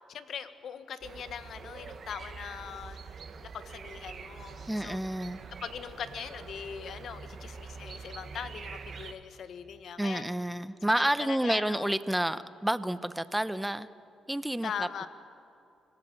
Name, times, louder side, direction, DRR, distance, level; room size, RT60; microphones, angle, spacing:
voice 1, 0.1-3.0 3.5-5.0 5.6-10.2 10.9-11.9 14.6-15.1, left 7 dB, 65° left, 11 dB, 1.4 m, -41 dB
sound 1, 1.0-9.1, right 5 dB, 50° right, 1.5 m, -45 dB
voice 2, 4.7-5.4 10.0-13.9 14.3-14.9, right 1 dB, 5° right, 14 dB, 0.8 m, -29 dB
24.5 x 17.5 x 8.9 m, 2.6 s
cardioid pair, 90°, 0 cm